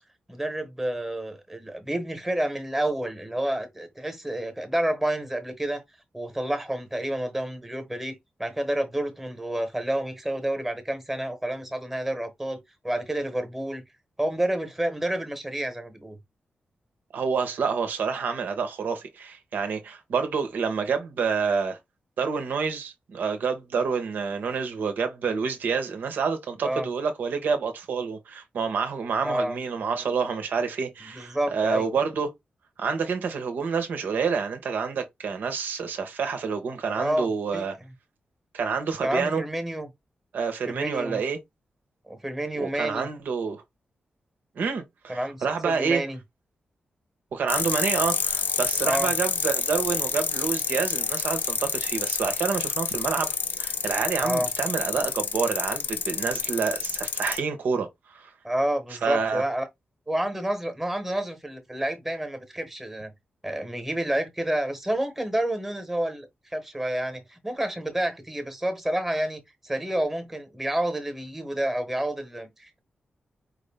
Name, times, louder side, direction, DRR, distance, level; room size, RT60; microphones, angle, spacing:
voice 1, 0.3-5.8 6.1-8.1 8.4-12.6 12.8-13.8 14.2-16.2 26.6-26.9 29.2-29.6 31.0-31.9 36.9-37.6 39.0-39.9 40.7-41.2 42.1-43.1 45.1-46.2 48.8-49.1 54.2-54.5 58.4-59.7 60.1-63.1 63.4-72.8, right 1 dB, 10° right, 1.0 m, -29 dB
voice 2, 17.1-21.8 22.2-32.3 32.8-37.8 38.5-39.4 40.3-41.4 42.6-43.6 44.5-46.0 47.3-53.3 53.6-57.9 58.1-58.3 59.0-59.4, right 5 dB, 85° right, 1.0 m, -28 dB
sound 1, 47.5-57.4, left 6 dB, 80° left, 0.7 m, -28 dB
4.8 x 2.6 x 3.4 m
wide cardioid pair, 160°, 3 cm